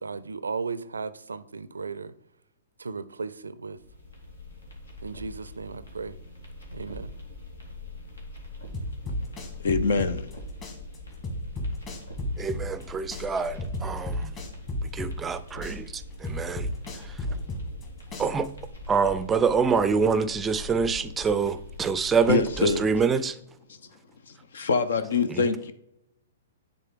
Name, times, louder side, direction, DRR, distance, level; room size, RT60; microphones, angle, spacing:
voice 1, 0.0-2.1 2.8-3.8 5.0-6.2 6.7-7.1, right 4 dB, 80° right, 0.4 m, -35 dB
sound 1, 3.8-23.0, left 1 dB, 85° left, 2.1 m, -42 dB
sound 2, 8.7-10.3 10.6-12.8 13.1-15.3 15.6-17.8 18.1-18.7, left 1 dB, 30° left, 1.9 m, -32 dB
voice 2, 9.6-10.3 22.3-22.9 23.7-23.8 24.3-25.7, left 4 dB, 65° left, 0.6 m, -25 dB
voice 3, 12.4-14.3 14.9-15.9 16.2-16.7 18.2-18.5 18.9-23.3, right 5 dB, 15° right, 0.4 m, -25 dB
9.8 x 4.0 x 3.7 m
figure-of-eight pair, 115°, 0 cm